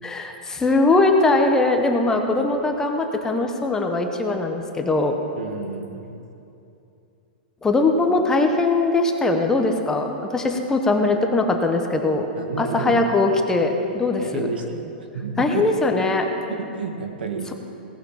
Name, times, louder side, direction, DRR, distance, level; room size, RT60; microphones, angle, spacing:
voice 1, 0.0-5.2 7.6-12.3 12.6-14.5 15.4-16.3, left 2 dB, 10° left, 4 dB, 0.9 m, -21 dB
voice 2, 5.4-6.1 12.3-13.0 14.2-15.7 16.2-17.5, right 5 dB, 85° right, 4 dB, 1.6 m, -31 dB
17.5 x 6.7 x 5.8 m, 2.7 s
hypercardioid pair, 140°, 5 cm